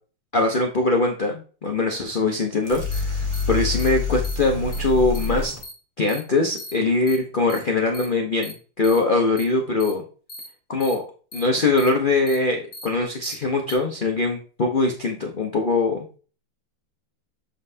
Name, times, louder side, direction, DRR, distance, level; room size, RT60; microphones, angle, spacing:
voice 1, 0.3-5.5 6.0-10.0 10.7-11.0 11.3-16.1, left 3 dB, 85° left, 1 dB, 0.4 m, -22 dB
sound 1, 2.6-5.6, left 4 dB, 15° right, 1.4 m, -27 dB
sound 2, 2.9-3.0 3.3-3.4 3.8-3.9 4.2-4.4 4.7-4.8 5.1-5.3 5.6-5.7 6.1-6.2 6.6-6.7 7.1-7.2 7.5-7.6 7.9-8.0 8.4-8.5 8.8-9.0 9.4-9.5 9.8-9.9 10.3-10.5 10.8-10.9 11.3-11.4 11.8-11.9 12.3-12.4 12.7-12.9 13.2-13.3 13.7-13.8, left 1 dB, 30° left, 0.9 m, -38 dB
7.1 x 5.5 x 2.7 m, 0.37 s
omnidirectional pair, 2.2 m